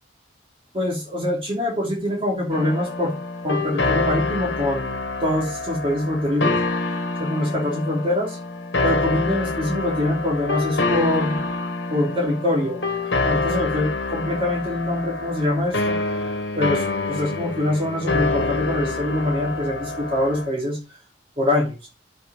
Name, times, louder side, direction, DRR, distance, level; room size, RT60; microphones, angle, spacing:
voice 1, 0.7-3.2 3.4-6.5 7.2-8.4 8.8-11.4 11.9-15.9 16.6-20.8 21.4-21.9, left 1 dB, 30° right, -2 dB, 3.0 m, -24 dB
sound 1, 2.5-20.5, left 3 dB, 80° left, 2.0 m, -26 dB
7.7 x 5.8 x 7.4 m, 0.30 s
head